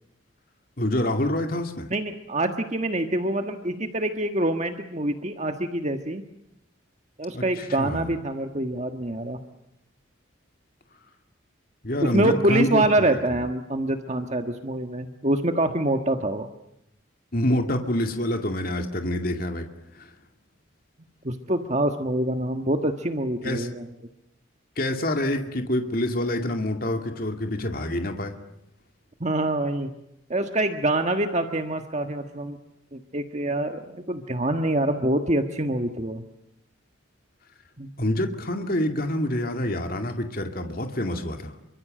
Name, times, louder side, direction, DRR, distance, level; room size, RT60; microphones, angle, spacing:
voice 1, 0.8-1.9 7.3-8.2 11.8-13.2 17.3-19.7 19.9-20.1 23.4-23.7 24.8-28.3 38.0-41.5, left 1 dB, 45° left, 5 dB, 2.4 m, -27 dB
voice 2, 1.9-6.2 7.2-9.4 12.0-16.5 21.2-23.9 29.2-29.9 30.3-32.6 32.9-36.2 37.8-37.9, right 1 dB, 35° right, 6 dB, 1.5 m, -25 dB
27.5 x 24.5 x 7.8 m, 0.83 s
head